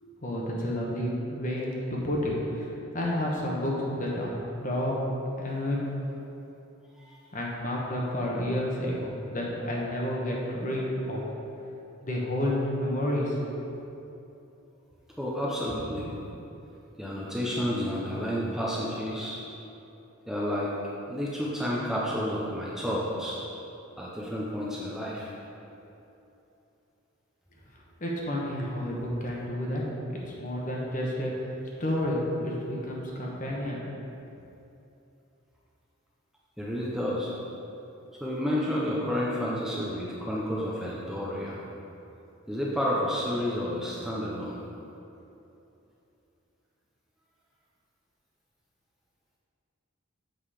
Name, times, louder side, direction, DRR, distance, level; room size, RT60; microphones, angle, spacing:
voice 1, 0.0-2.7 2.9-4.9 5.4-5.9 7.3-11.2 12.0-13.4 28.0-29.8 30.4-31.5 31.8-33.9, left 1 dB, 35° left, -3 dB, 1.2 m, -30 dB
voice 2, 15.2-16.1 17.0-19.4 20.3-20.7 21.1-23.4 24.0-25.3 36.6-37.3 38.2-41.6 42.5-44.6, equal, ahead, -6 dB, 0.8 m, -30 dB
7.7 x 5.3 x 5.0 m, 2.9 s
head